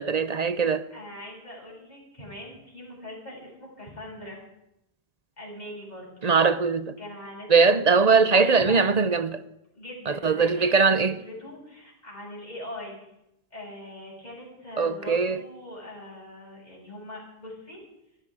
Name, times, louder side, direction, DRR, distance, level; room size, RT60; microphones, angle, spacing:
voice 1, 0.0-0.8 6.2-6.9 7.5-9.4 10.2-11.1 14.8-15.4, right 4 dB, 45° right, 0.7 m, -21 dB
voice 2, 0.9-4.4 5.4-6.1 7.0-7.7 8.3-8.9 9.7-13.0 13.5-17.8, left 1 dB, 45° left, 7.0 m, -41 dB
17.5 x 15.5 x 4.9 m
omnidirectional pair, 1.0 m